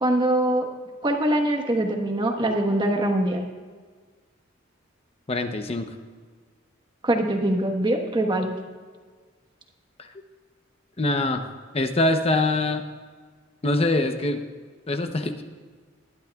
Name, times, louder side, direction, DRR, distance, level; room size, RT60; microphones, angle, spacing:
voice 1, 0.0-0.7 1.0-3.5 7.0-8.6, right 1 dB, 25° right, 3 dB, 1.3 m, -23 dB
voice 2, 5.3-5.9 11.0-11.4 11.7-12.8 13.6-14.4 14.9-15.4, left 2 dB, 30° left, 7 dB, 0.8 m, -23 dB
20.0 x 12.5 x 2.4 m, 1.5 s
head